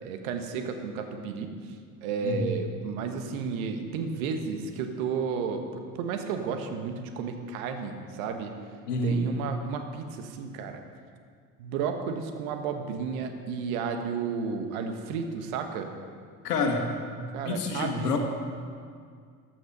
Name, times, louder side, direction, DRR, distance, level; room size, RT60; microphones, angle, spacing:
voice 1, 0.0-1.5 2.0-8.5 9.0-10.8 11.6-15.9 17.3-18.1, right 5 dB, 60° right, 6 dB, 1.4 m, -32 dB
voice 2, 8.9-9.2 16.4-16.8 17.1-18.2, left 3 dB, 75° left, 3 dB, 1.7 m, -28 dB
14.5 x 9.5 x 5.5 m, 2.1 s
figure-of-eight pair, 65°, 47 cm